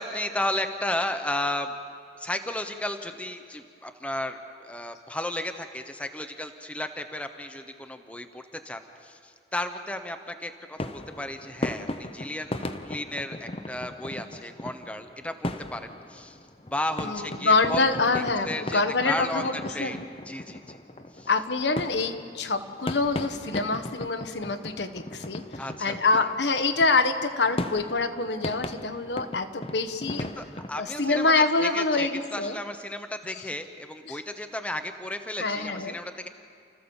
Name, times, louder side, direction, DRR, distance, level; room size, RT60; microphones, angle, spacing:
voice 1, 0.0-1.8 2.1-12.6 12.8-17.9 18.1-20.0 20.3-20.8 21.1-21.3 25.6-26.3 30.4-31.3 31.6-36.3, left 1 dB, 5° left, 7 dB, 1.0 m, -34 dB
sound 1, 10.8-30.7, left 1 dB, 35° left, 0.9 m, -37 dB
voice 2, 17.0-20.0 21.3-25.4 25.8-30.3 30.8-32.6 34.1-34.2 35.4-36.0, left 3 dB, 80° left, 8 dB, 1.3 m, -26 dB
29.5 x 15.0 x 7.2 m, 2.2 s
head